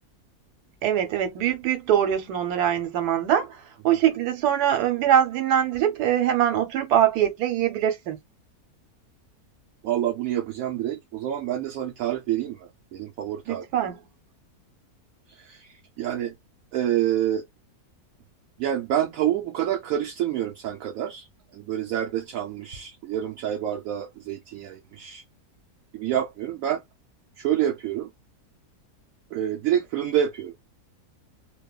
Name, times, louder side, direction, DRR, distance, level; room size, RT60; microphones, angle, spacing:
voice 1, 0.8-8.2 13.5-14.0, right 10 dB, 90° right, 1.3 m, -23 dB
voice 2, 9.8-13.6 15.3-16.3 16.7-17.4 18.6-21.3 21.5-25.2 25.9-26.8 27.4-28.1 29.3-30.5, right 11 dB, 70° right, 0.9 m, -27 dB
2.9 x 2.1 x 2.3 m
omnidirectional pair, 1.6 m